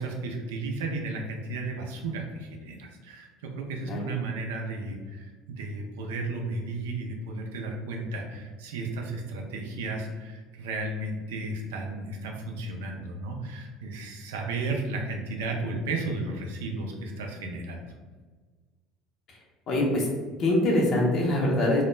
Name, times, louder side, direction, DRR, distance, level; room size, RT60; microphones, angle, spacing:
voice 1, 0.0-17.9, right 2 dB, 90° right, 1 dB, 0.4 m, -34 dB
voice 2, 19.7-20.1 20.4-21.8, left 1 dB, 55° left, -2 dB, 0.6 m, -23 dB
2.2 x 2.1 x 3.1 m, 1.4 s
supercardioid pair, 85°, 0 cm